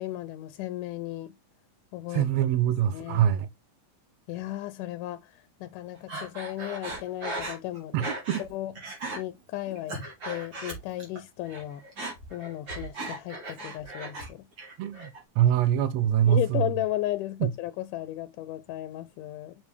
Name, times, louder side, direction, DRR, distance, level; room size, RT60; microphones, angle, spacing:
voice 1, 0.0-1.4 1.9-2.3 2.9-3.3 4.3-8.1 8.4-8.7 9.2-10.0 10.2-11.8 12.3-14.5 16.3-19.6, left 15 dB, 85° left, 2.1 m, -34 dB
voice 2, 2.1-3.5 7.9-8.4 14.8-16.7 17.4-17.5, right 10 dB, 75° right, 1.6 m, -24 dB
Breathing, 6.1-8.5 8.8-9.2 9.7-11.2 11.5-14.3 14.6-15.2, right 2 dB, 35° right, 3.5 m, -37 dB
7.2 x 5.1 x 3.2 m
omnidirectional pair, 3.6 m